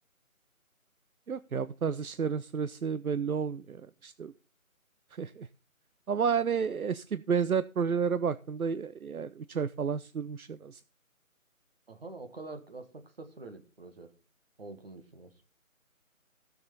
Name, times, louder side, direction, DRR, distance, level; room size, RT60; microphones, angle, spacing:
voice 1, 1.3-4.3 5.1-5.5 6.1-10.8, right 6 dB, 80° right, 15 dB, 0.7 m, -31 dB
voice 2, 11.9-14.1 14.6-15.3, right 3 dB, 45° right, 7 dB, 1.9 m, -46 dB
14.5 x 6.7 x 5.4 m, 0.34 s
figure-of-eight pair, 165°, 42 cm